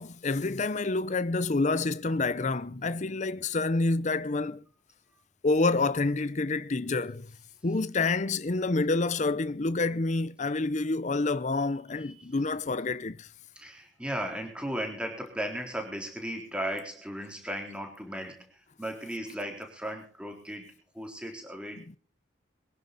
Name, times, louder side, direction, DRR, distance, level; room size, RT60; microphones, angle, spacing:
voice 1, 0.0-4.6 5.4-7.3 7.6-13.3, left 3 dB, 40° left, 0.6 m, -28 dB
voice 2, 12.0-12.3 13.5-22.0, equal, 5° right, 3.8 m, -36 dB
23.5 x 10.5 x 4.0 m
head